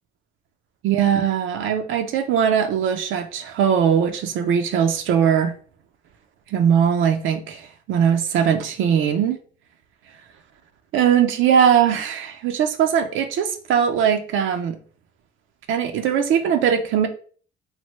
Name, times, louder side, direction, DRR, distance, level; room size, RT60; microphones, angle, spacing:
voice 1, 0.8-5.5 6.5-9.4 10.9-14.8 15.7-17.1, right 8 dB, 85° right, 6 dB, 0.4 m, -20 dB
3.2 x 2.0 x 3.0 m, 0.43 s
cardioid pair, 90°, 20 cm